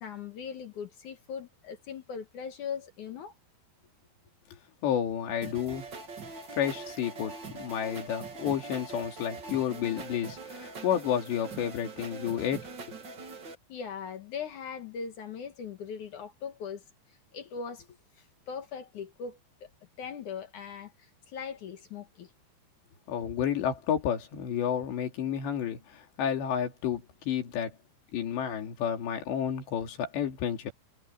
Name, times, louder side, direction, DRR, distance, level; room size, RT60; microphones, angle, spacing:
voice 1, 0.0-3.3 13.7-16.8 17.3-17.9 18.2-19.7 20.0-22.3, left 6 dB, 60° left, 2.4 m, -40 dB
voice 2, 4.8-5.9 6.6-12.7 23.1-27.7 28.1-30.7, left 9 dB, 90° left, 5.0 m, -31 dB
sound 1, 5.4-13.5, right 4 dB, 35° right, 2.0 m, -43 dB
omnidirectional pair, 4.9 m